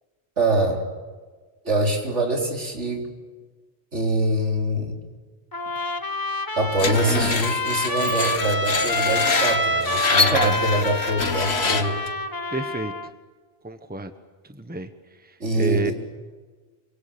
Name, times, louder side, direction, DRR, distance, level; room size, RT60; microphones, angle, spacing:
voice 1, 0.4-0.9 1.6-3.1 3.9-5.0 6.6-12.0 15.4-15.9, right 1 dB, 80° right, 1 dB, 4.2 m, -24 dB
Trumpet, 5.5-13.1, left 1 dB, 20° left, 1.1 m, -27 dB
Screech, 6.8-12.1, left 4 dB, 65° left, 1.7 m, -25 dB
voice 2, 12.5-12.9 13.6-14.1 14.6-14.9 15.5-15.9, right 3 dB, 10° right, 8 dB, 1.3 m, -28 dB
27.5 x 25.0 x 7.0 m, 1.4 s
omnidirectional pair, 1.2 m